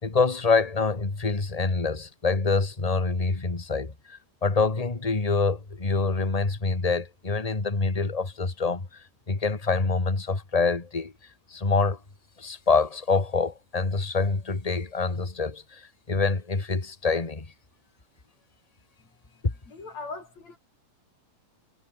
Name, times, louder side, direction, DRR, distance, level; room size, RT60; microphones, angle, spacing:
voice 1, 0.0-11.1 11.5-12.0 12.4-17.4 19.4-19.5, left 4 dB, 15° left, 1.6 m, -26 dB
voice 2, 19.7-20.6, left 3 dB, 65° left, 7.1 m, -39 dB
omnidirectional pair, 3.3 m